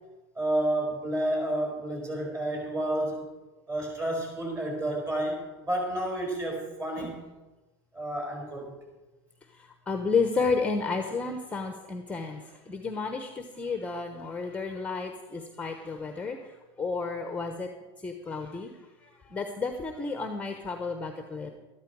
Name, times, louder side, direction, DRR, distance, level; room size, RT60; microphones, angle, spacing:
voice 1, 0.4-3.3 3.7-7.2 7.9-8.7, right 1 dB, 25° right, 0 dB, 5.2 m, -30 dB
voice 2, 9.9-12.4 12.7-16.4 16.8-17.7 18.0-18.7 19.3-21.5, left 4 dB, 10° left, 5 dB, 1.0 m, -31 dB
13.0 x 12.5 x 4.8 m, 1.1 s
supercardioid pair, 130°, 14 cm